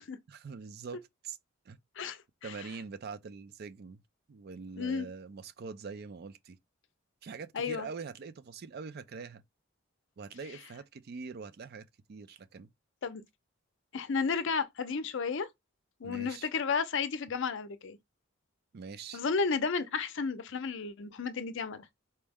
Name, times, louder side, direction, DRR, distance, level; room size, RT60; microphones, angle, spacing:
voice 1, 0.3-1.4 1.7-1.8 2.4-4.0 4.3-6.6 7.2-9.4 10.2-12.7 16.0-16.5 18.7-19.2, right 5 dB, 50° right, 0.4 m, -44 dB
voice 2, 2.0-2.5 4.8-5.1 7.5-7.9 13.0-13.2 13.9-15.5 16.0-18.0 19.1-21.9, left 5 dB, 65° left, 0.5 m, -32 dB
4.4 x 2.1 x 3.4 m
head